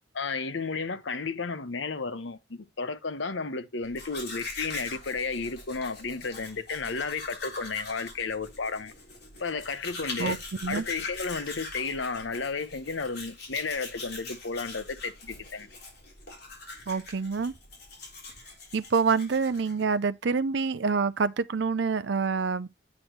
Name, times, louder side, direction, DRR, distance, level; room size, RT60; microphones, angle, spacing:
voice 1, 0.1-8.9 9.4-10.4 10.7-15.7, left 4 dB, 75° left, 0.9 m, -33 dB
Domestic sounds home sounds, 3.8-19.9, left 3 dB, 55° left, 3.8 m, -43 dB
voice 2, 16.9-17.5 18.7-22.7, right 5 dB, 65° right, 0.5 m, -26 dB
8.6 x 6.2 x 3.1 m
head